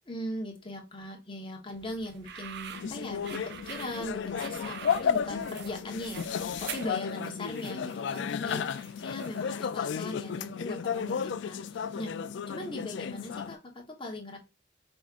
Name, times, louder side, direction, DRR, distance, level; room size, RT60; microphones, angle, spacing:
voice 1, 0.1-12.1 12.5-14.4, left 1 dB, 25° left, 1 dB, 1.0 m, -39 dB
sound 1, 1.7-6.9, right 1 dB, 75° right, 1.2 m, -55 dB
sound 2, 2.0-9.6, right 8 dB, 55° right, 0.4 m, -45 dB
sound 3, 2.7-13.5, left 7 dB, 65° left, 0.3 m, -33 dB
5.1 x 3.6 x 2.4 m, 0.29 s
head